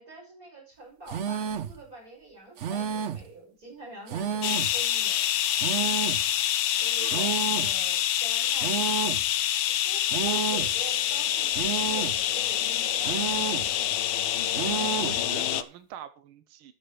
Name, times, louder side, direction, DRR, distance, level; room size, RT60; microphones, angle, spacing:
voice 1, 0.0-5.3 6.8-9.0 9.5-13.7, right 2 dB, 40° right, -2 dB, 6.3 m, -45 dB
sound 1, 1.1-1.8 2.6-3.3 4.1-4.8 5.6-6.3 7.1-7.8 8.6-9.3 10.1-10.8 11.5-12.2 13.0-13.7 14.5-15.2, right 7 dB, 65° right, 0.7 m, -31 dB
sound 2, 4.4-15.6, left 12 dB, 80° left, 1.6 m, -26 dB
voice 2, 6.9-7.5 14.8-16.7, right 10 dB, 85° right, 11 dB, 1.7 m, -43 dB
12.5 x 7.4 x 4.9 m, 0.32 s
omnidirectional pair, 2.2 m